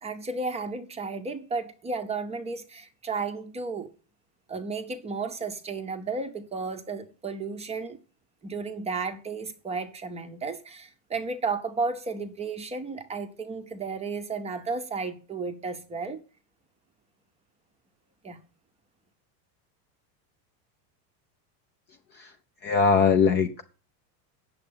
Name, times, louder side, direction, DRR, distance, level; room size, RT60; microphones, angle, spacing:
voice 1, 0.0-3.9 4.5-8.0 8.4-16.2 18.2-18.4, right 4 dB, 15° right, 0.7 m, -33 dB
voice 2, 22.6-23.6, left 5 dB, 25° left, 0.5 m, -21 dB
8.7 x 7.2 x 8.6 m
supercardioid pair, 165°, 47 cm